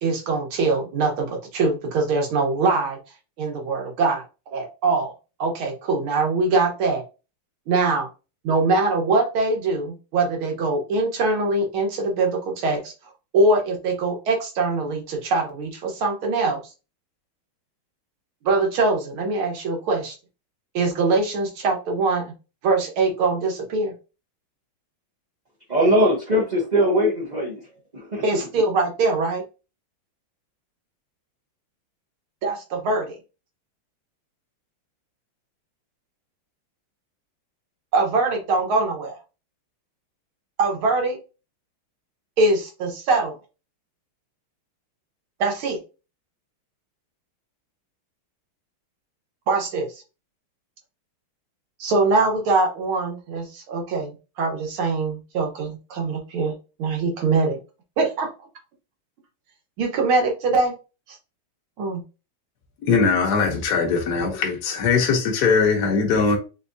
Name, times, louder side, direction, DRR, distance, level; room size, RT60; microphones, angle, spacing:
voice 1, 0.0-3.0 3.4-5.1 5.4-7.0 7.7-8.1 8.4-12.9 13.3-16.6 18.4-20.2 20.7-22.3 22.6-23.9 28.2-29.4 32.4-33.2 37.9-39.2 40.6-41.2 42.4-43.4 45.4-45.8 49.5-50.0 51.8-54.1 54.4-57.6 58.0-58.3 59.8-60.7 61.1-61.2 61.8-62.0, right 3 dB, 75° right, 2.1 m, -23 dB
voice 2, 25.7-27.6 27.9-28.2, equal, 55° right, 0.4 m, -20 dB
voice 3, 62.8-66.4, left 5 dB, 60° left, 1.3 m, -20 dB
4.6 x 3.4 x 2.6 m
omnidirectional pair, 2.3 m